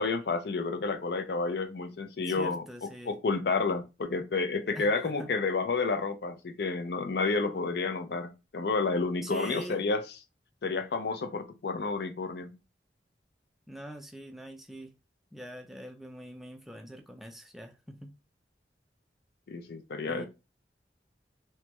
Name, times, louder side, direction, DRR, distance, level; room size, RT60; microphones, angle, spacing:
voice 1, 0.0-2.6 3.1-10.0 10.6-12.5 19.5-20.3, left 4 dB, 65° left, 0.5 m, -30 dB
voice 2, 2.3-3.2 4.7-5.3 9.2-9.8 13.7-14.9 15.3-18.1 20.0-20.3, equal, ahead, 0.3 m, -43 dB
3.2 x 2.1 x 2.9 m
head